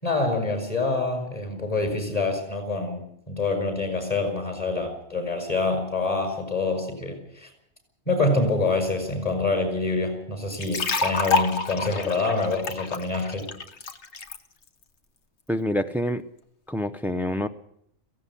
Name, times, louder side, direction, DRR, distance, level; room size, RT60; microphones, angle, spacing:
voice 1, 0.0-3.0 3.3-7.5 8.1-13.5, left 3 dB, 30° left, 4 dB, 6.2 m, -26 dB
sound 1, 10.5-14.4, left 4 dB, 60° left, 1.6 m, -28 dB
voice 2, 15.5-16.3 16.7-17.5, equal, 5° right, 9 dB, 0.3 m, -26 dB
16.5 x 16.5 x 9.9 m, 0.72 s
omnidirectional pair, 1.3 m